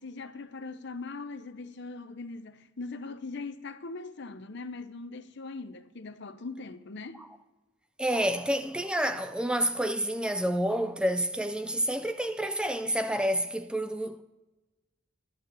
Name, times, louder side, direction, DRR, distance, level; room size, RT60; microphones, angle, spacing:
voice 1, 0.0-7.2, left 3 dB, 55° left, 0.8 m, -40 dB
voice 2, 8.0-14.2, right 1 dB, 5° right, 0.4 m, -29 dB
11.5 x 11.5 x 7.5 m
head